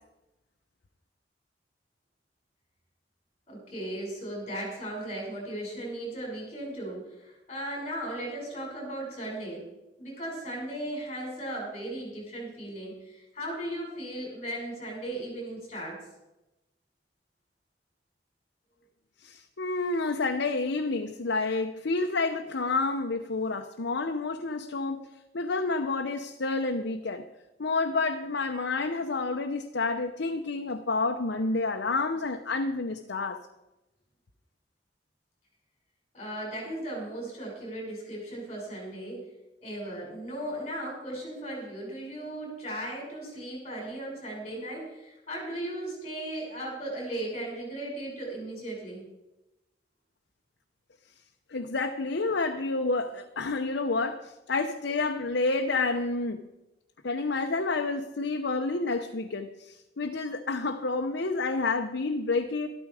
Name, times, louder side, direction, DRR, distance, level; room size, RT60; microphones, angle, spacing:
voice 1, 3.5-9.6 10.0-16.0 36.1-39.2 39.6-49.1, right 1 dB, 35° left, -1 dB, 6.3 m, -37 dB
voice 2, 19.2-25.1 25.3-27.2 27.6-33.4 51.5-54.2 54.5-56.4 57.0-59.5 60.0-62.7, left 3 dB, 90° left, 4 dB, 0.8 m, -29 dB
13.5 x 13.0 x 4.9 m, 0.96 s
head